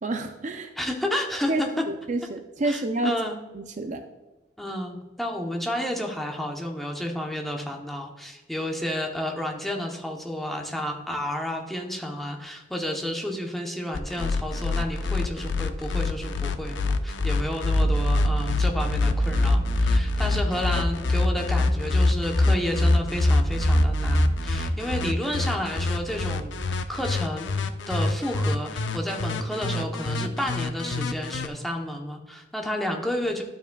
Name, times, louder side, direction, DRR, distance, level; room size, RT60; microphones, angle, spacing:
voice 1, 0.0-0.7 1.5-1.6 1.9-3.1 3.5-4.0, right 2 dB, 40° right, 6 dB, 0.5 m, -28 dB
voice 2, 0.8-1.7 2.6-3.4 4.6-27.5 27.9-33.4, equal, ahead, 1 dB, 0.8 m, -31 dB
sound 1, 13.9-31.5, left 3 dB, 75° left, 0.5 m, -25 dB
sound 2, 17.7-27.3, right 2 dB, 60° right, 0.9 m, -31 dB
12.0 x 7.0 x 2.3 m, 1.1 s
head